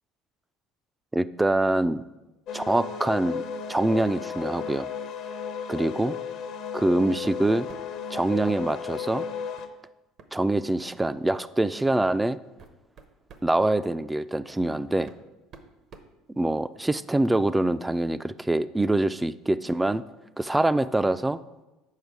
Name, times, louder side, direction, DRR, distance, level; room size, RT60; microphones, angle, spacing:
voice 1, 1.1-2.0 2.5-3.4 3.7-4.9 5.7-6.2 6.7-7.7 8.1-9.3 10.3-12.4 13.4-15.1 16.4-20.0 20.4-21.4, right 2 dB, 10° right, 15 dB, 0.3 m, -24 dB
sound 1, 2.5-9.7, left 6 dB, 65° left, 0.7 m, -35 dB
sound 2, 6.8-7.0 7.2-8.0 9.6-9.7 10.2-10.3 10.8-11.0 11.8-11.9 12.4-13.5 14.6-14.7 15.1-16.8, right 5 dB, 55° right, 0.8 m, -50 dB
6.5 x 5.0 x 4.7 m, 1.0 s
hypercardioid pair, 75°, 0 cm